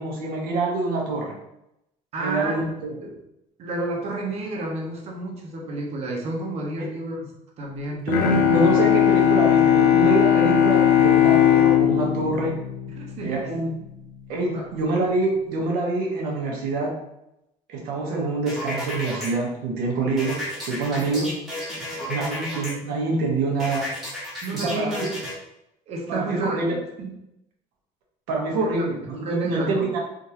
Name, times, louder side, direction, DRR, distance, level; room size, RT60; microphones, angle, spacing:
voice 1, 0.0-1.3 2.2-2.9 6.8-6.9 8.1-12.5 13.2-13.7 14.3-16.9 17.7-20.4 20.6-21.3 22.1-23.9 24.5-25.1 26.1-26.8 28.3-30.0, right 3 dB, 80° right, -1 dB, 1.1 m, -25 dB
voice 2, 2.1-2.6 3.0-3.2 3.6-8.1 13.0-13.4 14.5-14.7 20.9-21.3 24.4-25.1 25.9-26.6 27.0-27.1 28.5-28.8 29.2-29.9, right 2 dB, 45° right, -1 dB, 0.9 m, -31 dB
Bowed string instrument, 8.1-13.7, left 10 dB, 80° left, 0.6 m, -18 dB
sound 1, 18.5-19.3 20.2-22.7 23.6-25.3, left 1 dB, ahead, 1.2 m, -32 dB
3.6 x 2.6 x 2.9 m, 0.84 s
cardioid pair, 155°, 15 cm